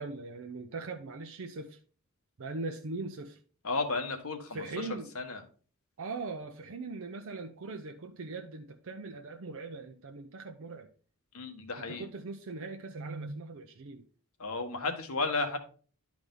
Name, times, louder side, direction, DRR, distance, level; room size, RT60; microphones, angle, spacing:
voice 1, 0.0-1.8 2.4-3.4 4.5-5.1 6.0-10.9 11.8-14.0, right 3 dB, 65° right, 0.6 m, -40 dB
voice 2, 3.6-4.6 5.1-5.4 11.3-12.0 14.4-15.6, left 3 dB, 70° left, 1.2 m, -33 dB
10.5 x 4.7 x 3.8 m
head